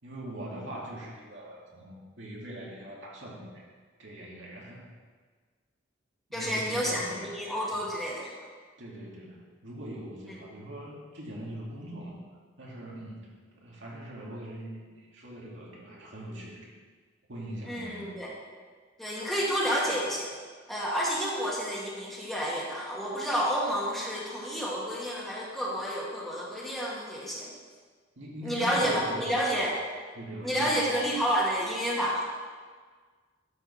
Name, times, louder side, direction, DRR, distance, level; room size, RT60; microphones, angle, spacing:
voice 1, 0.0-3.7 4.0-4.9 6.3-7.3 7.7-8.0 8.8-12.2 12.6-16.7 17.3-18.2 28.2-29.5 30.1-31.1, right 1 dB, 75° right, -3 dB, 2.4 m, -42 dB
voice 2, 6.3-8.3 10.3-10.4 17.7-18.3 19.0-20.3 20.7-27.5 28.4-29.8 30.4-32.2, equal, ahead, -5 dB, 2.0 m, -30 dB
12.0 x 5.3 x 6.4 m, 1.5 s
head